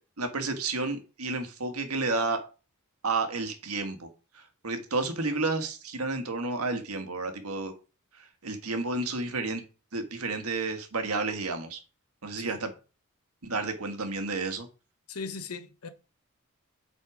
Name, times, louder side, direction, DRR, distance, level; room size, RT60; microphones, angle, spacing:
voice 1, 0.2-2.4 3.0-4.1 4.3-7.7 8.2-9.6 9.9-11.8 12.2-12.7 13.4-14.7, right 3 dB, 85° right, 1.5 m, -31 dB
voice 2, 15.1-15.9, left 4 dB, 90° left, 1.0 m, -38 dB
8.2 x 4.2 x 4.9 m
head